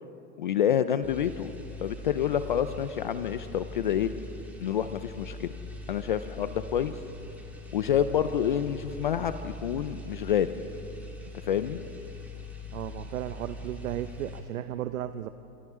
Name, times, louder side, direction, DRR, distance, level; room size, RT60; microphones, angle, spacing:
voice 1, 0.4-1.5 1.8-4.1 4.6-5.5 5.9-6.9 7.7-10.5 11.5-11.8, left 9 dB, 35° left, 12 dB, 0.4 m, -28 dB
sound 1, 1.0-14.4, left 2 dB, 5° right, 1.8 m, -42 dB
voice 2, 12.7-15.3, right 12 dB, 60° right, 11 dB, 0.8 m, -34 dB
28.0 x 26.0 x 3.6 m, 2.8 s
hypercardioid pair, 150°, 46 cm